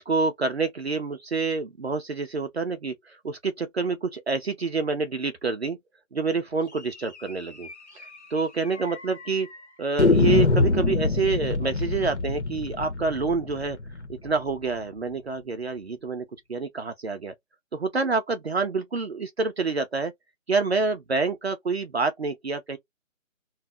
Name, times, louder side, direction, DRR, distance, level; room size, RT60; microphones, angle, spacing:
voice 1, 0.0-5.8 6.1-7.7 7.9-9.5 9.8-13.8 14.1-17.3 17.7-20.1 20.5-22.8, right 4 dB, 55° right, 0.6 m, -27 dB
sound 1, 7.2-7.3 7.6-7.7 8.0-8.1 8.7-9.3 10.0-14.8, left 3 dB, 55° left, 1.0 m, -25 dB
2.7 x 2.2 x 3.3 m
hypercardioid pair, 180°, 40 cm